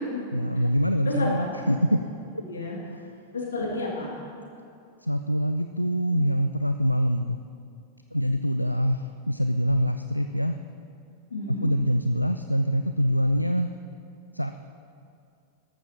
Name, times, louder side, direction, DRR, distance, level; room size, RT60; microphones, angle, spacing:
voice 1, 0.3-2.0 2.8-3.1 5.0-7.4 8.1-10.6 11.5-13.7 14.3-14.5, equal, 90° left, 8 dB, 0.3 m, -25 dB
voice 2, 1.1-1.5 2.5-2.8 3.3-4.2 11.3-11.7, left 2 dB, 70° left, -3 dB, 2.5 m, -31 dB
13.5 x 12.0 x 2.9 m, 2.4 s
figure-of-eight pair, 90°, 0 cm